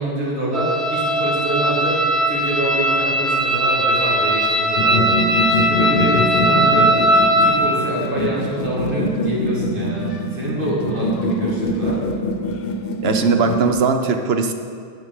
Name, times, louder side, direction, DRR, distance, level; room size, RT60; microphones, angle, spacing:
voice 1, 0.0-2.0 2.3-12.0, right 1 dB, 60° right, -5 dB, 2.3 m, -26 dB
sound 1, 0.5-7.6, right 1 dB, ahead, 0.8 m, -18 dB
sound 2, 4.8-13.7, equal, 70° left, 0.9 m, -24 dB
voice 2, 13.0-14.5, right 5 dB, 80° right, 6 dB, 1.0 m, -19 dB
10.5 x 5.7 x 6.6 m, 2.2 s
omnidirectional pair, 1.0 m